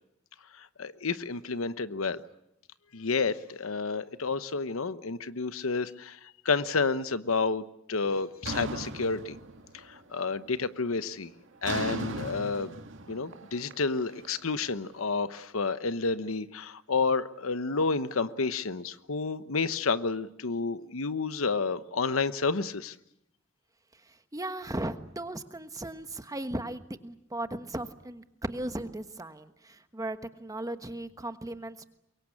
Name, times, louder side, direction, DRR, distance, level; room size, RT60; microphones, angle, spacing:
voice 1, 0.6-2.2 2.9-6.2 6.4-7.6 7.9-9.4 9.7-11.3 11.6-12.7 13.1-22.9, left 4 dB, 80° left, 13 dB, 1.0 m, -30 dB
sound 1, 8.4-10.0 10.3-10.8 11.6-14.7, right 2 dB, 65° right, 2.2 m, -38 dB
voice 2, 23.9-31.8, right 1 dB, 15° right, 9 dB, 1.3 m, -37 dB
24.0 x 22.5 x 8.6 m, 0.85 s
head